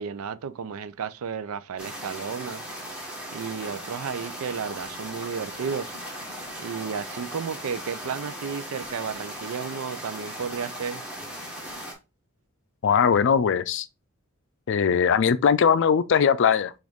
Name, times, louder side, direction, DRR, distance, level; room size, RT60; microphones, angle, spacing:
voice 1, 0.0-2.6 3.3-5.9 6.6-11.0, right 6 dB, 85° right, 0.4 m, -33 dB
sound 1, 1.8-11.9, equal, 5° right, 1.3 m, -38 dB
voice 2, 12.8-13.9 14.7-16.7, left 7 dB, 60° left, 0.4 m, -20 dB
6.0 x 2.5 x 3.5 m
head